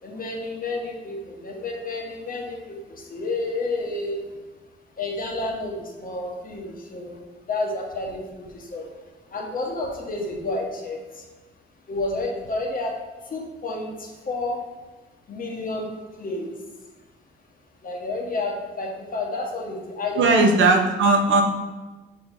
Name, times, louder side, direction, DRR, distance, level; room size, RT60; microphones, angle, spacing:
voice 1, 0.0-4.2 5.0-7.2 7.5-8.9 9.3-11.3 11.9-13.0 13.2-14.6 15.3-16.6 17.8-20.5, left 2 dB, 45° left, 0 dB, 1.4 m, -30 dB
voice 2, 20.2-21.4, right 3 dB, 75° right, 4 dB, 0.9 m, -17 dB
6.0 x 3.2 x 5.4 m, 1.2 s
cardioid pair, 90°, 20 cm